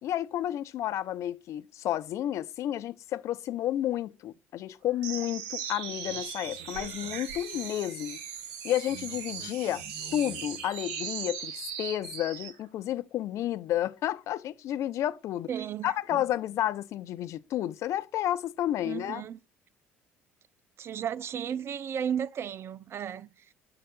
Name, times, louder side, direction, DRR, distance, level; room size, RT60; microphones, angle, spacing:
voice 1, 0.0-8.2 8.6-9.8 10.1-15.5 15.8-19.2, left 12 dB, 55° left, 0.4 m, -31 dB
sound 1, 5.0-12.6, right 7 dB, 75° right, 1.4 m, -39 dB
voice 2, 9.4-9.7 15.5-16.2 18.8-19.4 20.8-23.5, right 8 dB, 45° right, 0.5 m, -35 dB
6.4 x 3.8 x 4.3 m
hypercardioid pair, 65°, 6 cm